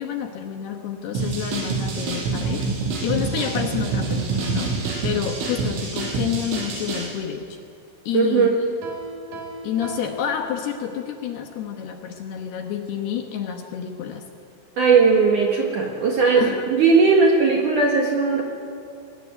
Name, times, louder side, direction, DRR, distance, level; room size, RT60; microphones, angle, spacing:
voice 1, 0.0-2.7 3.0-7.5 8.1-8.7 9.6-14.2 16.3-16.7, left 9 dB, 70° left, 4 dB, 2.7 m, -29 dB
sound 1, 1.2-7.1, right 4 dB, 90° right, 7.2 m, -26 dB
voice 2, 8.1-8.6 14.8-18.4, right 4 dB, 60° right, 0 dB, 2.2 m, -18 dB
Piano, 8.8-11.1, right 2 dB, 40° right, 3.4 m, -38 dB
22.0 x 19.0 x 9.5 m, 2.5 s
omnidirectional pair, 5.6 m